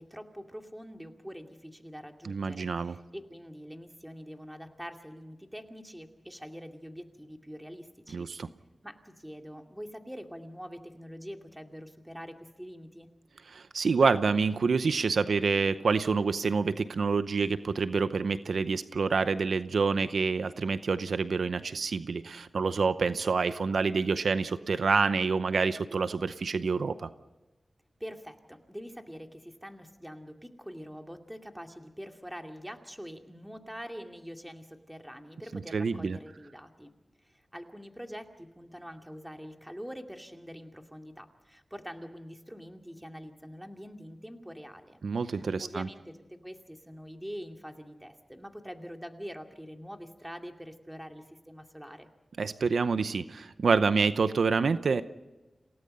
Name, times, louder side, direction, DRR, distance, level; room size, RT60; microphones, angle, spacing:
voice 1, 0.0-8.3 8.8-13.1 28.0-36.9 37.2-52.1, equal, 5° right, 4 dB, 2.4 m, -45 dB
voice 2, 2.2-3.0 8.1-8.5 13.5-27.1 35.7-36.2 45.0-45.9 52.4-55.0, right 4 dB, 80° right, 12 dB, 0.7 m, -27 dB
28.0 x 17.5 x 5.5 m, 1.1 s
cardioid pair, 55°, 0 cm